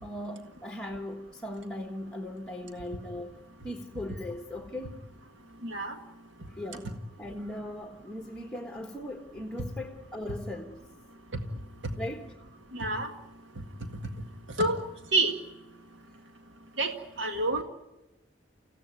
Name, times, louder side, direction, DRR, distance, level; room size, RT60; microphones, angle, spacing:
voice 1, 0.0-3.3 3.6-5.0 6.5-6.9 7.2-10.8 11.9-12.3 17.5-17.6, left 1 dB, 5° left, 1.4 m, -39 dB
voice 2, 5.6-6.0 11.8-11.9 12.7-13.1 14.6-14.8 15.1-15.4 16.8-17.6, right 2 dB, 75° right, 1.9 m, -27 dB
29.5 x 16.0 x 9.5 m
head